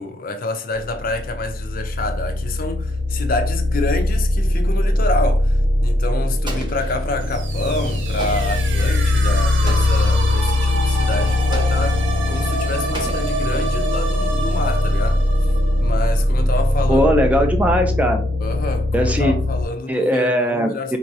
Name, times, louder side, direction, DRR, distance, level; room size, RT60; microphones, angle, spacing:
voice 1, 0.0-12.0 12.3-15.2 15.8-17.1 18.4-21.0, left 2 dB, 50° left, 0.5 m, -28 dB
sound 1, 1.0-19.7, left 1 dB, 55° right, 1.1 m, -20 dB
Explosion, 6.4-7.4 8.2-8.7 9.7-10.2 11.5-12.1 12.9-13.8, right 1 dB, 25° right, 0.9 m, -36 dB
sound 2, 7.1-16.8, right 3 dB, 85° right, 0.6 m, -29 dB
voice 2, 16.9-18.2 18.9-19.3 19.9-21.0, equal, 10° right, 0.4 m, -19 dB
3.9 x 2.4 x 2.7 m
head